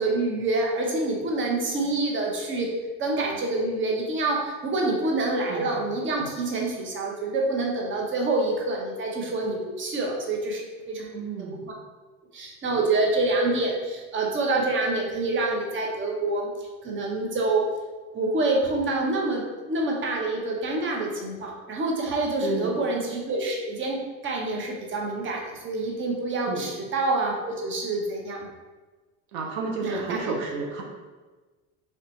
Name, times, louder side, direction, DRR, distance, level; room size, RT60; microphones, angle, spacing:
voice 1, 0.0-2.7 3.0-10.6 10.9-11.1 11.4-11.7 12.3-16.5 16.8-17.6 18.1-19.4 19.7-24.0 24.2-28.5 29.8-30.3, right 2 dB, 35° right, 0 dB, 0.8 m, -27 dB
voice 2, 11.1-11.6 22.4-22.8 26.5-26.7 29.3-30.8, right 3 dB, 80° right, 0 dB, 0.7 m, -31 dB
3.2 x 2.8 x 3.1 m, 1.3 s
supercardioid pair, 85°, 36 cm